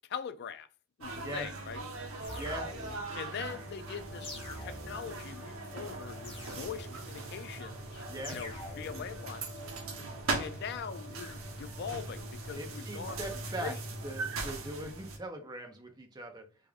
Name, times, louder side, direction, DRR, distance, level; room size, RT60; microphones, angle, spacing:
voice 1, 0.1-0.7 1.0-1.9 3.1-4.3 4.6-9.5 10.4-13.8, left 7 dB, 50° left, 0.3 m, -42 dB
sound 1, 1.0-15.2, right 3 dB, 70° right, 0.8 m, -41 dB
sound 2, 2.2-3.1 4.2-5.1 6.2-7.1 8.2-9.1, left 1 dB, 25° left, 0.9 m, -45 dB
voice 2, 2.4-2.9 8.1-8.4 12.6-13.7 14.0-16.4, right 1 dB, 20° right, 0.7 m, -41 dB
sound 3, 3.5-14.7, left 1 dB, ahead, 1.1 m, -47 dB
3.4 x 2.5 x 3.5 m
head